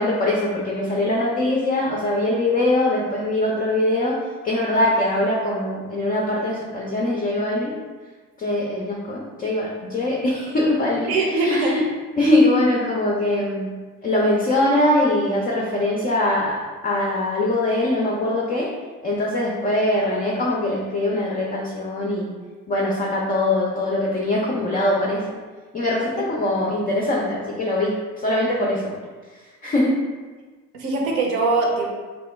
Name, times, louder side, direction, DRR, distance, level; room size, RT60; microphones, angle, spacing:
voice 1, 0.0-4.2 4.4-7.8 8.4-11.8 12.2-13.7 14.0-18.7 19.0-22.3 22.7-25.4 25.7-28.9 29.3-30.0, left 1 dB, 20° left, -3 dB, 0.4 m, -22 dB
voice 2, 11.1-11.7 30.7-31.9, right 3 dB, 65° right, -1 dB, 0.8 m, -21 dB
3.0 x 2.1 x 3.2 m, 1.4 s
figure-of-eight pair, 55°, 47 cm